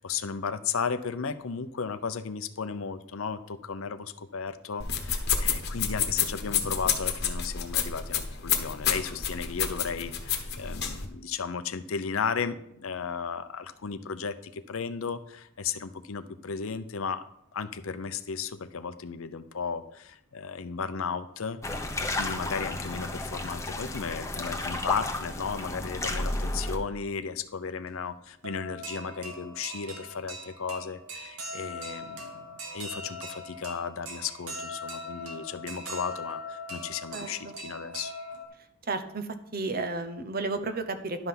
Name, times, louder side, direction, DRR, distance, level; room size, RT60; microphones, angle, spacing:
voice 1, 0.0-17.2 17.5-32.5 32.7-38.1, left 6 dB, 70° left, 12 dB, 0.6 m, -35 dB
sound 1, 4.8-11.1, left 7 dB, 50° left, 1.2 m, -29 dB
sound 2, 21.6-26.8, left 2 dB, 15° left, 0.9 m, -32 dB
sound 3, 25.9-26.6 27.9-28.0 28.4-38.5, equal, 90° right, 1.8 m, -41 dB
voice 2, 37.1-37.6 38.8-41.3, right 3 dB, 45° right, 9 dB, 0.8 m, -33 dB
11.0 x 5.6 x 5.8 m, 0.77 s
head